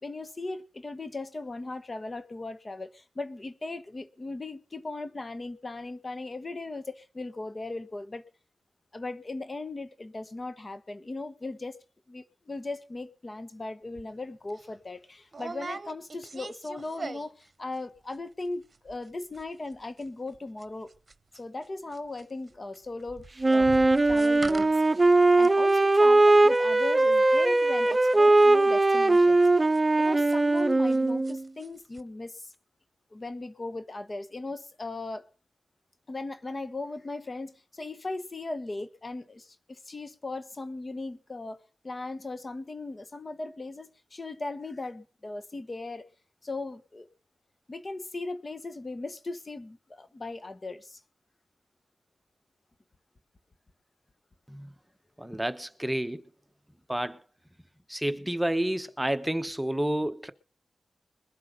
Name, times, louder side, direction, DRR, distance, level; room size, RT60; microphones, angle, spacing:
voice 1, 0.0-8.2 8.9-11.8 12.1-20.9 21.3-23.7 24.0-24.7 25.3-29.4 30.0-32.5 33.1-35.3 36.1-46.1 46.4-47.1 47.7-51.0, left 2 dB, 45° left, 1.1 m, -38 dB
sound 1, 14.0-14.1 14.5-14.7 15.3-17.5 17.7-18.2 18.4-18.5 18.7-19.1 19.3-31.0 31.2-31.7 31.9-32.0, right 3 dB, 55° right, 0.9 m, -43 dB
Wind instrument woodwind instrument, 23.4-31.4, right 2 dB, 35° right, 0.6 m, -20 dB
voice 2, 55.2-56.2 56.9-57.2 57.9-60.3, right 1 dB, 10° right, 1.0 m, -30 dB
21.5 x 8.4 x 5.3 m
cardioid pair, 45°, 0 cm